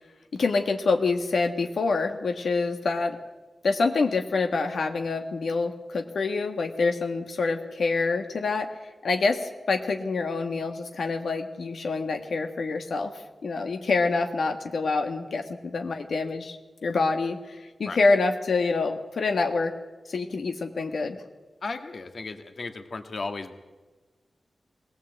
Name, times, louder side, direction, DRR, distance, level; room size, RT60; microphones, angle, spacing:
voice 1, 0.3-3.2 3.6-16.6 16.8-19.7 20.0-21.2, left 3 dB, 85° left, 5 dB, 1.5 m, -26 dB
voice 2, 21.6-23.6, left 3 dB, 60° left, 7 dB, 1.7 m, -35 dB
21.5 x 18.5 x 8.0 m, 1.2 s
wide cardioid pair, 115°, 0 cm